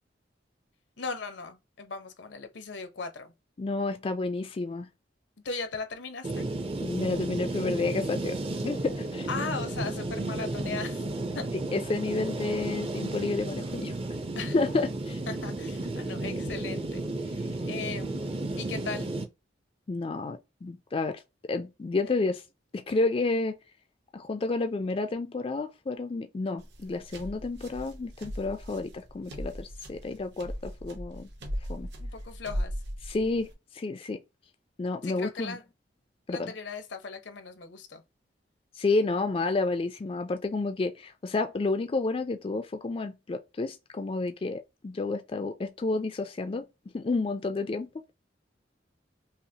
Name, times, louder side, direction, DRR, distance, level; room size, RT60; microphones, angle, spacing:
voice 1, 1.0-3.3 5.4-6.5 9.3-11.0 11.3-11.5 14.3-14.6 15.3-19.1 32.0-32.8 35.0-35.6 36.3-38.0, left 4 dB, 80° left, 0.8 m, -38 dB
voice 2, 3.6-4.9 6.8-8.4 8.6-9.3 11.7-13.9 14.5-15.2 19.9-22.4 22.7-23.5 24.1-31.3 31.7-31.9 33.0-34.2 34.8-35.6 36.3-36.5 38.7-46.7 46.9-48.1, left 3 dB, 30° left, 0.3 m, -30 dB
sound 1, 6.2-19.2, right 2 dB, 30° right, 0.5 m, -33 dB
sound 2, 26.6-33.5, equal, 70° right, 1.1 m, -38 dB
5.5 x 2.0 x 2.7 m
head